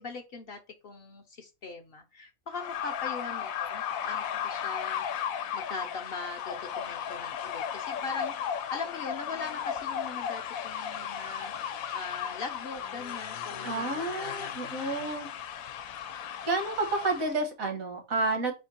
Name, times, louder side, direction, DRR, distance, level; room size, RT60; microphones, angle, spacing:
voice 1, 0.0-5.2 5.5-15.3, left 4 dB, 60° left, 5 dB, 0.7 m, -41 dB
sound 1, 2.5-17.3, left 8 dB, 85° left, 1.0 m, -35 dB
voice 2, 13.6-15.3 16.4-18.5, right 3 dB, 80° right, 4 dB, 1.7 m, -30 dB
4.3 x 2.7 x 4.2 m, 0.28 s
omnidirectional pair, 1.4 m